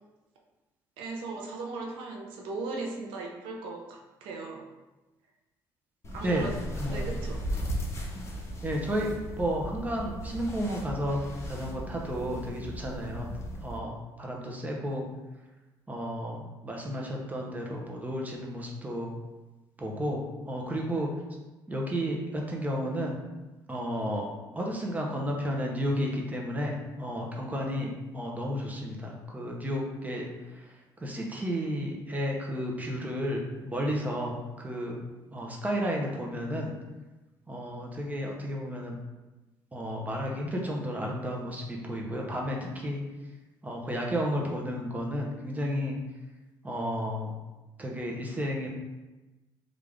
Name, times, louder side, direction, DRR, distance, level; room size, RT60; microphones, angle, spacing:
voice 1, 1.0-4.7 6.1-6.5 6.9-7.4, right 3 dB, 90° right, 0 dB, 0.6 m, -37 dB
sound 1, 6.0-13.8, equal, 35° left, 0.7 m, -36 dB
voice 2, 6.8-7.1 8.6-13.3 13.6-15.0 15.9-19.1 19.8-21.1 21.7-23.2 23.7-30.7 31.0-35.0 35.3-36.7 37.5-39.0 39.7-43.0 43.6-46.0 46.6-47.4 47.8-48.7, equal, 20° right, -1 dB, 0.7 m, -32 dB
3.5 x 2.5 x 3.4 m, 1.1 s
cardioid pair, 95°, 9 cm